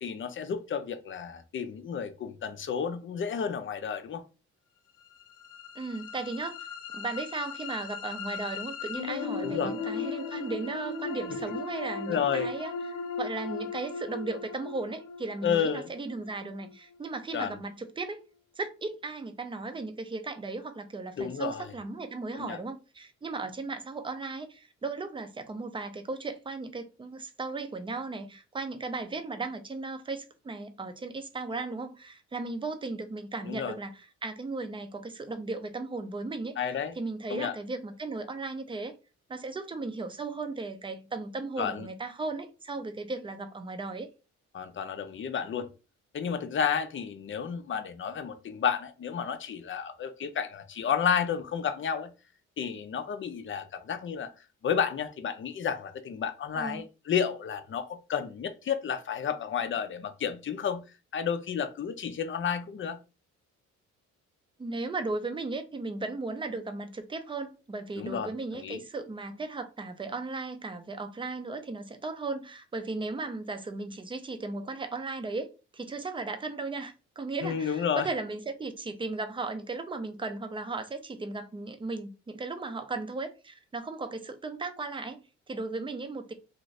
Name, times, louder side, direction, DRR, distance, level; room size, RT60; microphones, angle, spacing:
voice 1, 0.0-4.2 9.4-9.7 12.1-12.5 15.4-15.9 17.3-17.6 21.2-21.7 22.3-22.6 33.4-33.8 36.6-36.9 37.3-37.6 41.6-41.9 44.5-45.7 46.1-52.1 52.6-54.3 54.6-60.8 61.1-63.0 68.0-68.8 77.4-78.1, left 7 dB, 40° left, 0.6 m, -31 dB
sound 1, 5.1-17.2, left 5 dB, 85° left, 0.7 m, -37 dB
voice 2, 5.7-6.6 6.9-18.2 18.6-39.0 39.3-44.1 56.5-56.8 64.6-86.3, right 3 dB, 15° right, 0.5 m, -36 dB
2.6 x 2.5 x 3.2 m
cardioid pair, 90°, 30 cm